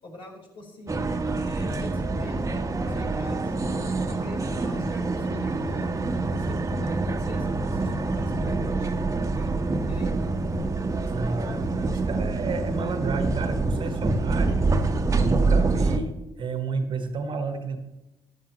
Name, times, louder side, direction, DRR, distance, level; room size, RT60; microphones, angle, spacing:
voice 1, 0.0-1.0 1.4-2.5 2.9-3.5 4.0-5.9 6.3-9.5 9.8-10.2, left 2 dB, 55° left, -1 dB, 4.7 m, -45 dB
sound 1, 0.9-16.0, right 3 dB, 30° right, 1.4 m, -26 dB
voice 2, 11.1-14.7 15.2-17.8, right 4 dB, 50° right, 8 dB, 1.5 m, -31 dB
15.0 x 11.5 x 3.1 m, 0.97 s
hypercardioid pair, 55°, 11 cm